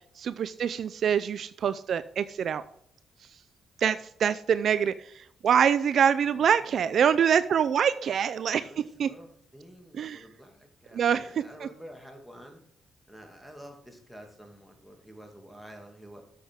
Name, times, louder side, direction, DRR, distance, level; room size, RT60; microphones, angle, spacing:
voice 1, 0.2-2.6 3.8-8.7 9.0-9.1 9.9-10.2 10.9-11.3 11.6-11.7, right 8 dB, 65° right, 13 dB, 0.4 m, -25 dB
voice 2, 6.2-7.2 8.6-12.6 13.1-16.2, equal, ahead, 2 dB, 2.4 m, -49 dB
8.5 x 7.3 x 3.6 m, 0.69 s
cardioid pair, 85°, 0 cm